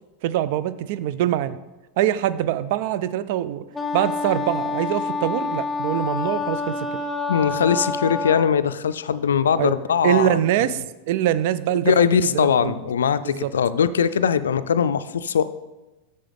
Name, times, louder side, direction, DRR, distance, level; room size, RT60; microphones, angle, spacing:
voice 1, 0.2-1.6 2.0-3.6 3.9-7.0 9.6-9.7 10.0-12.7 13.2-13.5, right 12 dB, 60° right, 15 dB, 0.4 m, -24 dB
Wind instrument woodwind instrument, 3.7-8.6, left 4 dB, ahead, 0.9 m, -27 dB
voice 2, 7.3-10.4 11.8-15.4, left 7 dB, 85° left, 13 dB, 0.3 m, -21 dB
8.9 x 6.7 x 3.5 m, 1.1 s
hypercardioid pair, 105°, 0 cm